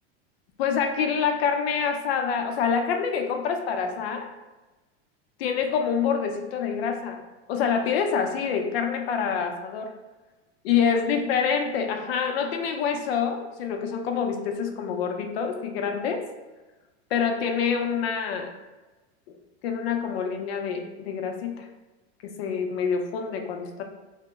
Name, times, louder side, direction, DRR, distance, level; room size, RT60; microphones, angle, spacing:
voice 1, 0.6-4.3 5.4-7.2 7.5-9.9 10.6-16.2 17.1-18.5 19.6-21.6 22.2-23.8, left 6 dB, 70° left, 5 dB, 0.5 m, -26 dB
2.9 x 2.1 x 3.4 m, 1.2 s
supercardioid pair, 170°, 32 cm